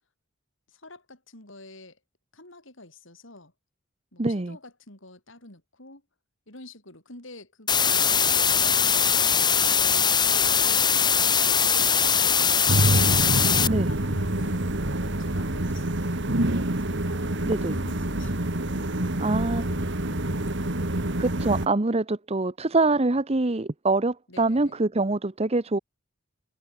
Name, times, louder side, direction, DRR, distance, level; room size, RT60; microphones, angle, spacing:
voice 1, 0.7-2.0 2.3-3.5 4.1-6.0 6.5-10.6 11.7-14.8 15.2-18.4 18.7-20.7 24.3-24.8, left 2 dB, 70° left, 7.9 m, -48 dB
voice 2, 4.2-4.6 13.7-13.9 17.4-17.8 19.2-19.6 21.2-25.8, right 2 dB, 30° right, 0.9 m, -24 dB
sound 1, 7.7-13.7, left 7 dB, 20° left, 1.3 m, -21 dB
sound 2, 12.7-21.7, right 1 dB, 65° right, 2.4 m, -26 dB
head